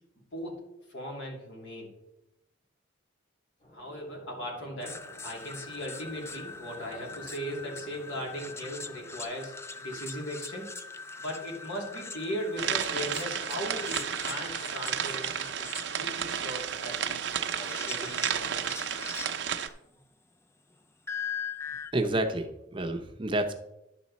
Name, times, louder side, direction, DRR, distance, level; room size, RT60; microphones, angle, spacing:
voice 1, 0.9-1.9 3.7-10.7 11.2-18.9, equal, 70° left, -1 dB, 2.8 m, -38 dB
sound 1, 3.6-9.2, equal, 40° left, 3.4 m, -53 dB
sound 2, 4.8-19.7 21.1-21.9, left 5 dB, 15° left, 0.4 m, -42 dB
sound 3, 12.6-19.7, right 8 dB, 65° right, 0.6 m, -32 dB
voice 2, 21.9-23.5, right 1 dB, 25° right, 6 dB, 0.7 m, -29 dB
11.0 x 6.9 x 4.1 m, 0.90 s
head